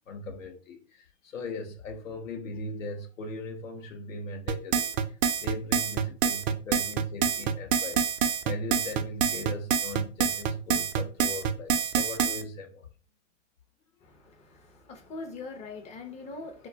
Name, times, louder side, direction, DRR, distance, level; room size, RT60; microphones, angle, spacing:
voice 1, 0.1-5.0 5.4-8.0 8.4-12.9, left 2 dB, 90° left, 0.6 m, -39 dB
sound 1, 4.5-12.4, right 7 dB, 75° right, 0.5 m, -26 dB
voice 2, 14.0-16.7, left 3 dB, 20° left, 0.4 m, -42 dB
2.2 x 2.2 x 3.6 m
hypercardioid pair, 110°, 38 cm